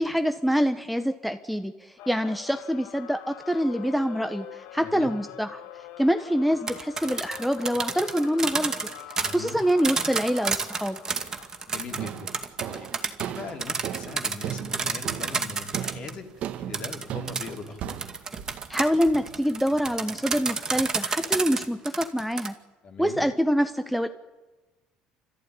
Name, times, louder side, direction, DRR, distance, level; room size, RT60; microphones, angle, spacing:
voice 1, 0.0-5.6 6.0-8.7 9.3-11.0 18.7-22.5 23.0-24.1, equal, ahead, 8 dB, 1.0 m, -25 dB
sound 1, 2.0-15.5, left 12 dB, 80° left, 1.3 m, -46 dB
voice 2, 4.8-5.1 9.2-9.6 11.7-12.3 12.7-13.0 13.3-18.1 22.8-23.3, left 4 dB, 45° left, 4 dB, 3.5 m, -40 dB
sound 2, 6.5-16.1 16.7-22.5, right 4 dB, 25° right, 2.2 m, -30 dB
sound 3, 11.1-11.5 12.0-20.0, right 10 dB, 55° right, 1.2 m, -37 dB
29.5 x 14.0 x 9.8 m, 1.2 s
cardioid pair, 125°, 3 cm